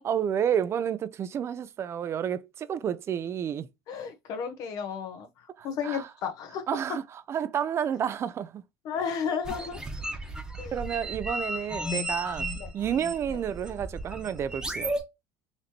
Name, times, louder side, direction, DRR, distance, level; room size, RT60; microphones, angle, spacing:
voice 1, 0.0-3.7 5.6-6.1 6.7-7.0 7.3-8.6 10.7-12.5 12.7-14.9, right 8 dB, 40° right, 0.5 m, -30 dB
voice 2, 3.9-6.7 8.8-9.8 10.6-10.8 12.5-12.7 13.3-13.4, left 6 dB, 55° left, 1.1 m, -33 dB
sound 1, 9.4-15.0, right 1 dB, 10° right, 1.1 m, -34 dB
4.1 x 3.1 x 2.9 m
supercardioid pair, 90°, 7 cm